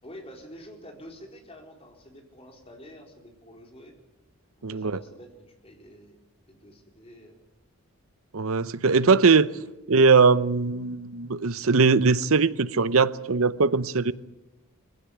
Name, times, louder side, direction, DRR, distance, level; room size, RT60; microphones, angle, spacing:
voice 1, 0.0-3.9 4.6-6.2 6.5-7.4, equal, 25° left, 4.0 m, -47 dB
voice 2, 4.6-5.0 8.3-9.5 9.9-14.1, right 4 dB, 70° right, 0.8 m, -20 dB
22.5 x 16.0 x 9.9 m
head